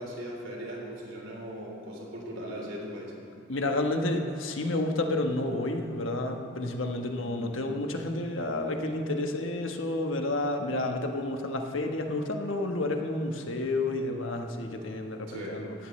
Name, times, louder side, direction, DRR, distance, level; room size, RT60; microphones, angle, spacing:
voice 1, 0.0-3.2 7.2-7.4 15.3-15.6, equal, 85° right, -2 dB, 3.4 m, -39 dB
voice 2, 3.5-15.7, left 2 dB, 90° left, 4 dB, 1.2 m, -30 dB
18.0 x 15.0 x 3.2 m, 2.4 s
head